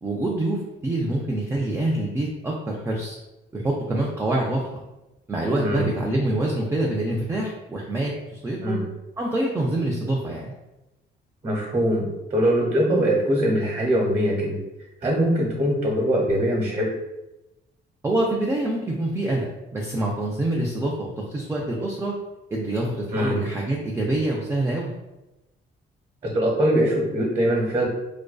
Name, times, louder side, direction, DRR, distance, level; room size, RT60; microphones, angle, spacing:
voice 1, 0.0-3.2 3.5-4.8 5.3-8.8 9.2-10.5 18.0-22.1 22.5-24.9, right 1 dB, 15° right, -2 dB, 0.3 m, -26 dB
voice 2, 11.4-14.6 15.0-16.9 23.1-23.4 26.3-27.9, equal, 40° right, -4 dB, 0.9 m, -22 dB
2.5 x 2.2 x 2.2 m, 0.98 s
cardioid pair, 90°, 20 cm